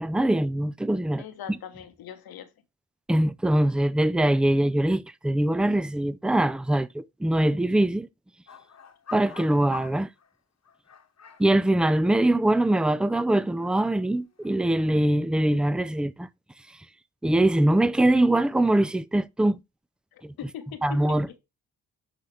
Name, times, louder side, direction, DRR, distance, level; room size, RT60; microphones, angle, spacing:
voice 1, 0.0-1.2 3.1-8.1 9.1-10.1 11.4-16.3 17.2-19.6 20.2-20.3 20.8-21.3, right 1 dB, 5° right, 0.4 m, -23 dB
voice 2, 1.2-2.5 20.1-21.4, left 9 dB, 85° left, 1.1 m, -41 dB
sound 1, 8.5-10.3 10.6-14.1 14.4-14.8, left 6 dB, 45° left, 1.2 m, -47 dB
11.5 x 4.1 x 3.2 m
cardioid pair, 60°, 36 cm